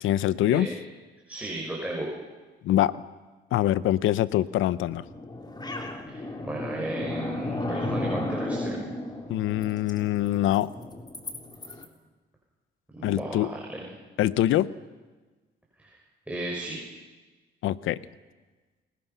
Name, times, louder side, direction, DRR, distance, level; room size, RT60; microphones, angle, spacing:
voice 1, 0.0-0.7 2.6-3.0 3.5-5.0 9.3-10.7 13.0-13.5 14.2-14.7 17.6-18.0, left 13 dB, 85° left, 17 dB, 0.8 m, -24 dB
voice 2, 1.3-2.1 6.1-8.8 12.9-13.9 15.8-16.0 16.3-16.8, right 1 dB, 5° right, -2 dB, 6.2 m, -35 dB
sound 1, 4.8-11.9, left 1 dB, 20° left, 3.6 m, -34 dB
29.0 x 22.0 x 5.8 m, 1.2 s
cardioid pair, 90°, 20 cm